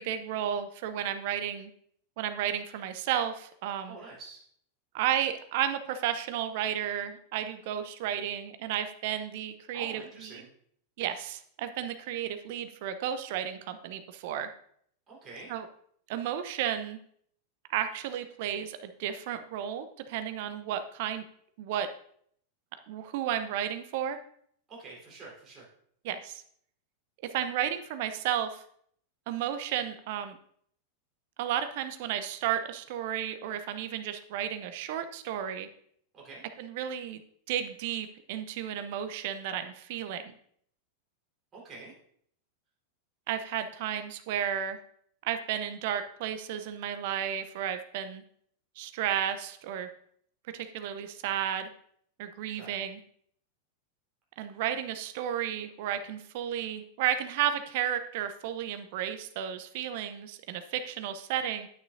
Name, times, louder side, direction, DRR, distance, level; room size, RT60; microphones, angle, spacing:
voice 1, 0.0-1.7 2.2-4.0 4.9-10.0 11.0-14.5 15.5-15.6 16.1-17.0 17.7-21.2 21.6-21.9 22.9-24.2 26.0-26.4 27.2-28.6 29.3-30.4 31.4-35.7 36.6-37.2 37.5-40.3 43.3-44.8 45.2-48.2 48.8-49.9 50.5-51.7 52.2-53.0 54.4-61.7, right 10 dB, 50° right, 10 dB, 0.7 m, -33 dB
voice 2, 3.9-4.4 9.7-10.5 15.1-15.5 24.7-25.7 36.1-36.4 41.5-41.9 52.6-52.8, right 3 dB, 30° right, -4 dB, 4.0 m, -46 dB
9.2 x 8.9 x 2.6 m, 0.64 s
figure-of-eight pair, 90°, 0 cm